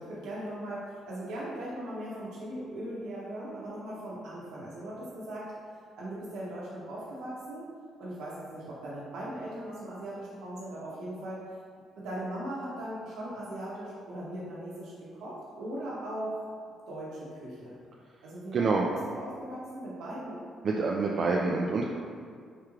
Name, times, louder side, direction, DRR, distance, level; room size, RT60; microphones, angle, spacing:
voice 1, 0.0-5.5 6.0-7.7 8.0-11.4 12.0-16.4 16.9-17.8 18.2-20.4, right 1 dB, 90° right, -7 dB, 0.8 m, -39 dB
voice 2, 18.5-18.8 20.6-21.9, right 4 dB, 55° right, -2 dB, 0.3 m, -26 dB
4.7 x 3.1 x 2.3 m, 2.1 s
cardioid pair, 90°, 0 cm